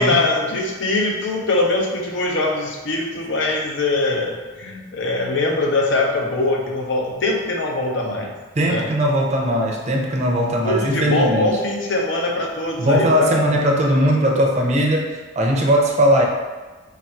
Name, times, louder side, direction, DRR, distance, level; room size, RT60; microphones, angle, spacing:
voice 1, 0.0-8.3 8.7-8.9 10.6-13.3, left 2 dB, 65° left, 1 dB, 0.7 m, -22 dB
voice 2, 8.6-11.6 12.8-16.3, equal, 35° right, 0 dB, 0.5 m, -19 dB
3.5 x 2.5 x 4.3 m, 1.3 s
head